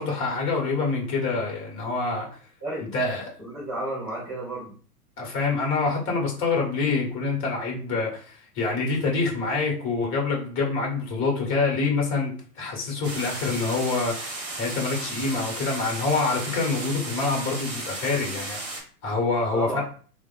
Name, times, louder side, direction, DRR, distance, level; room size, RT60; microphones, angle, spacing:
voice 1, 0.0-2.3 2.9-3.2 5.2-18.6 19.0-19.8, left 4 dB, 25° left, 0 dB, 1.2 m, -26 dB
voice 2, 2.6-2.9 3.4-4.7 19.5-19.8, right 1 dB, 5° left, -13 dB, 0.3 m, -32 dB
sound 1, 13.0-18.8, right 2 dB, 25° right, 0.8 m, -34 dB
3.2 x 2.1 x 2.5 m, 0.41 s
figure-of-eight pair, 105°, 47 cm